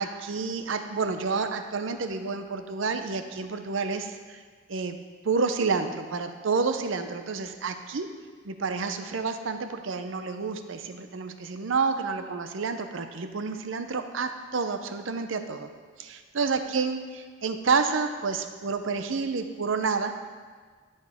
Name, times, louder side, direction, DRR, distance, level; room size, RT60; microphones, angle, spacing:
voice 1, 0.0-4.4 4.7-5.0 5.2-8.1 8.4-15.7 16.0-20.3, right 4 dB, 70° right, 8 dB, 0.6 m, -29 dB
13.5 x 5.3 x 3.5 m, 1.5 s
head